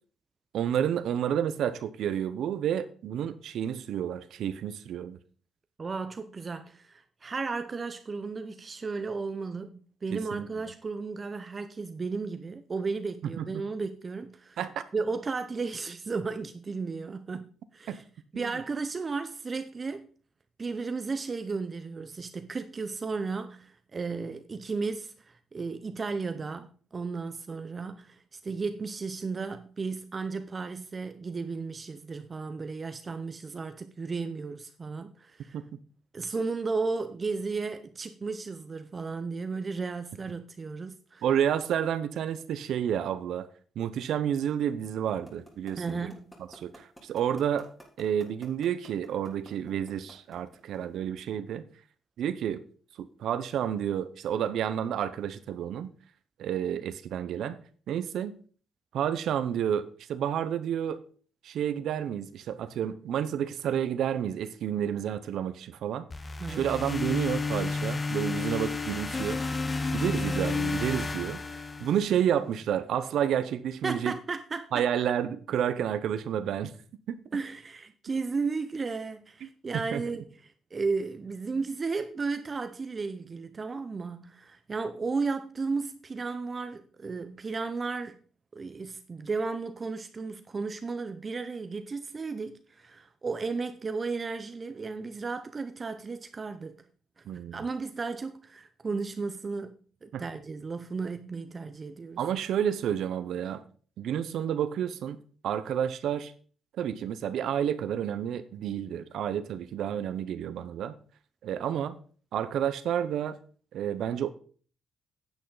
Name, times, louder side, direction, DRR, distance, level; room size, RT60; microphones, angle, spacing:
voice 1, 0.5-5.2 10.1-10.5 13.4-13.6 14.6-14.8 17.9-18.0 18.3-18.5 41.2-43.5 43.8-46.1 46.5-47.7 48.0-51.6 52.2-52.6 53.0-55.9 56.4-57.6 57.9-58.3 58.9-61.0 61.4-66.0 66.5-69.4 69.9-71.4 71.8-74.1 74.7-76.7 77.1-77.2 79.7-80.0 97.3-97.6 100.1-100.2 102.2-103.6 104.0-105.2 105.4-106.3 106.8-110.9 111.4-112.0 112.3-113.4 113.7-114.3, right 9 dB, 75° right, 0.8 m, -30 dB
voice 2, 5.8-14.6 14.9-18.0 18.3-20.1 20.6-35.6 36.1-41.2 45.8-46.3 66.4-66.7 73.8-74.8 77.3-88.2 88.5-96.8 97.2-97.3 97.5-102.2, right 4 dB, 35° right, 0.7 m, -34 dB
sound 1, 45.3-51.0, equal, 10° left, 3.0 m, -50 dB
sound 2, 66.1-72.3, left 3 dB, 30° left, 0.8 m, -31 dB
9.5 x 8.3 x 4.0 m
cardioid pair, 90°, 0 cm